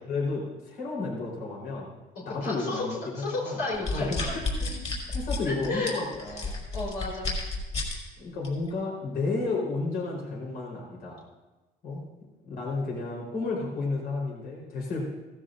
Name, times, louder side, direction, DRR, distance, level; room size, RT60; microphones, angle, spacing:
voice 1, 0.1-1.9 2.2-3.6 3.9-4.2 5.1-6.6 8.2-11.2 11.8-12.0 12.4-15.1, left 3 dB, 65° left, -3 dB, 4.1 m, -32 dB
voice 2, 2.4-2.8 3.1-4.8 5.4-6.0 6.5-7.4, left 3 dB, 85° left, -4 dB, 4.0 m, -33 dB
sound 1, 3.7-8.0 8.4-8.7, left 3 dB, 40° left, 5.4 m, -31 dB
16.0 x 15.5 x 2.6 m, 1.1 s
cardioid pair, 110°, 17 cm